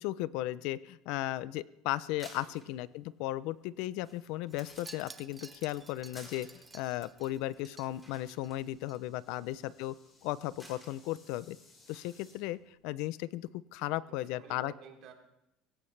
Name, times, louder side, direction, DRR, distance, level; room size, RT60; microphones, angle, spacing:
voice 1, 0.0-9.9 10.2-11.6 11.9-14.7, left 16 dB, 70° left, 18 dB, 0.5 m, -36 dB
sound 1, 2.0-12.7, equal, 10° left, 4.1 m, -59 dB
voice 2, 2.4-2.8 9.3-9.9 14.1-15.1, right 8 dB, 55° right, 2 dB, 3.1 m, -54 dB
Wind chime, 4.5-9.0 9.3-9.6 9.8-9.9, right 3 dB, 15° right, 0.6 m, -53 dB
sound 2, 7.3-12.3, left 3 dB, 25° left, 5.7 m, -64 dB
22.5 x 17.5 x 3.3 m, 0.85 s
cardioid pair, 150°, 0 cm